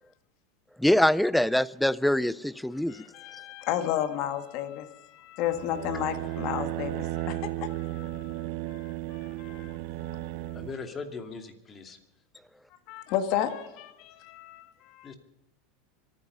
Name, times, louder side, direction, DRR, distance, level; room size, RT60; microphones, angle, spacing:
voice 1, 0.8-3.0, left 1 dB, ahead, 0.5 m, -24 dB
voice 2, 2.9-10.2 10.5-10.6 12.9-15.1, left 11 dB, 55° left, 1.8 m, -33 dB
sound 1, 5.4-10.7, right 16 dB, 65° right, 0.6 m, -34 dB
voice 3, 10.5-12.0 15.0-15.1, left 4 dB, 25° left, 2.5 m, -39 dB
25.0 x 9.8 x 5.4 m
supercardioid pair, 115°, 0 cm